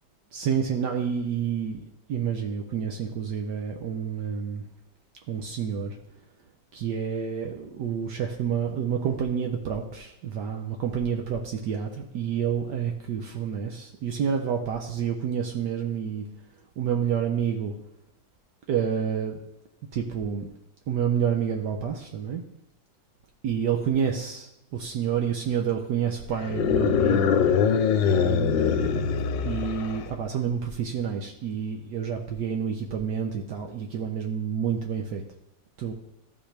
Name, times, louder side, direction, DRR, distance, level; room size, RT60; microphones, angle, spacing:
voice 1, 0.3-4.6 5.3-6.0 6.7-16.3 16.8-17.7 18.7-19.4 19.9-20.5 20.9-22.4 23.4-27.3 28.0-35.2 35.8-35.9, right 7 dB, 70° right, 3 dB, 1.3 m, -29 dB
sound 1, 26.4-30.1, left 7 dB, 80° left, 1.3 m, -23 dB
14.0 x 5.5 x 3.3 m, 0.84 s
omnidirectional pair, 2.0 m